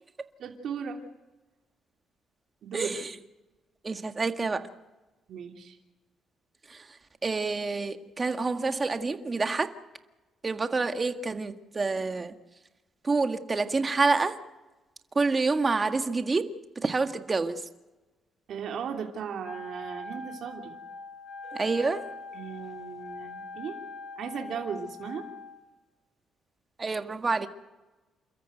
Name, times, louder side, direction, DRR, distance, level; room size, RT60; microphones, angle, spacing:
voice 1, 0.4-1.0 2.6-2.9 5.3-5.8 18.5-20.8 22.3-23.7 24.2-25.2, right 7 dB, 70° right, 2 dB, 3.0 m, -36 dB
voice 2, 2.7-3.1 3.8-4.6 6.7-7.0 7.2-9.7 10.4-12.4 13.0-14.4 15.1-17.6 21.5-22.1 26.8-27.5, right 3 dB, 30° right, 7 dB, 1.8 m, -28 dB
Wind instrument woodwind instrument, 19.4-25.6, left 3 dB, 50° left, 5.9 m, -42 dB
29.0 x 14.0 x 7.9 m, 1.1 s
cardioid pair, 90°, 0 cm